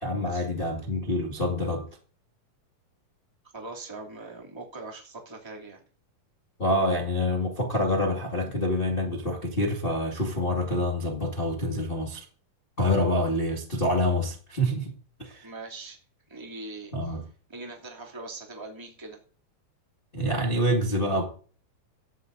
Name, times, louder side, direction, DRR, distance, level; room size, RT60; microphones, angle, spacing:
voice 1, 0.0-1.8 6.6-12.2 12.8-14.9 15.2-15.5 16.9-17.2 20.1-21.2, left 1 dB, 25° left, 1.4 m, -26 dB
voice 2, 3.5-5.8 15.4-16.0 16.3-17.2 17.5-19.2, right 2 dB, 10° right, 2.2 m, -41 dB
17.0 x 13.5 x 2.7 m
omnidirectional pair, 4.3 m